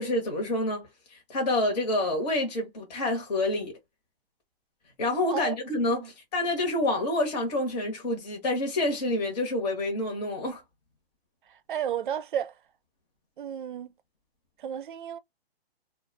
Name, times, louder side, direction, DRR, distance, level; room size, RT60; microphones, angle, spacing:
voice 1, 0.0-3.7 5.0-10.6, left 1 dB, 40° left, 1.2 m, -28 dB
voice 2, 11.7-12.5 13.4-13.9 14.6-15.2, right 9 dB, 55° right, 0.4 m, -32 dB
2.6 x 2.4 x 2.5 m
hypercardioid pair, 165°, 31 cm